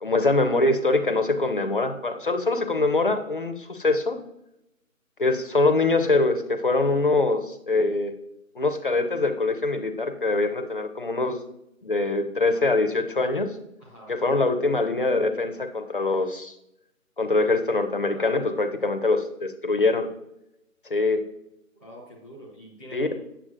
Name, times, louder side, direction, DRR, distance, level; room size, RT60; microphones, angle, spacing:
voice 1, 0.0-4.2 5.2-8.1 8.6-11.4 11.8-13.5 14.1-16.5 17.2-20.1 20.9-21.2 22.9-23.1, left 3 dB, 40° left, 8 dB, 0.6 m, -23 dB
voice 2, 13.8-14.1 18.1-18.4 21.7-23.2, equal, 10° right, -5 dB, 0.9 m, -44 dB
8.8 x 7.0 x 2.5 m, 0.85 s
figure-of-eight pair, 160°, 42 cm